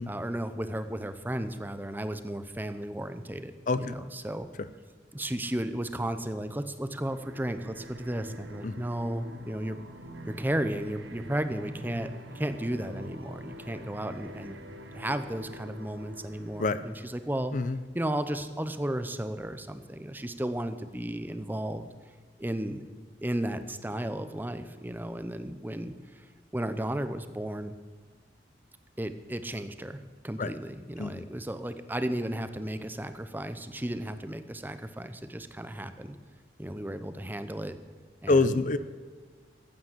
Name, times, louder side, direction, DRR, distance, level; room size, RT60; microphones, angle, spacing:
voice 1, 0.0-4.5 5.1-9.8 10.3-14.6 14.9-17.5 17.9-21.9 22.4-22.8 23.2-26.3 26.5-27.7 29.0-36.1 36.6-37.8 38.2-38.6, right 1 dB, 10° right, 10 dB, 0.7 m, -34 dB
sound 1, 7.0-17.5, equal, 85° right, 1.3 m, -46 dB
voice 2, 31.0-31.3 38.3-38.8, left 3 dB, 45° left, 13 dB, 0.5 m, -26 dB
14.5 x 8.8 x 7.4 m, 1.5 s
head